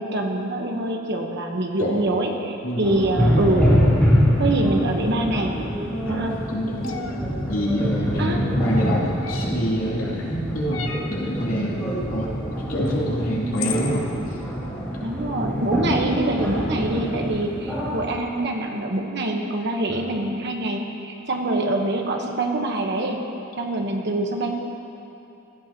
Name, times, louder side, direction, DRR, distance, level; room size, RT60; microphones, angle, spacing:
voice 1, 0.0-3.8 4.4-5.5 6.1-6.4 8.2-8.4 15.0-23.2 23.6-24.5, right 2 dB, 55° right, 2 dB, 1.2 m, -25 dB
voice 2, 2.6-3.1 6.0-6.9 7.5-11.8 12.1-14.4 15.8-16.0 19.9-20.1, equal, 85° left, -5 dB, 2.8 m, -27 dB
sound 1, 2.8-18.1, equal, 10° left, 2.6 m, -25 dB
sound 2, 6.8-7.2 9.2-9.7 10.7-11.2 12.9-13.0 13.5-14.0, left 7 dB, 65° left, 0.8 m, -32 dB
17.0 x 13.5 x 3.0 m, 2.8 s
head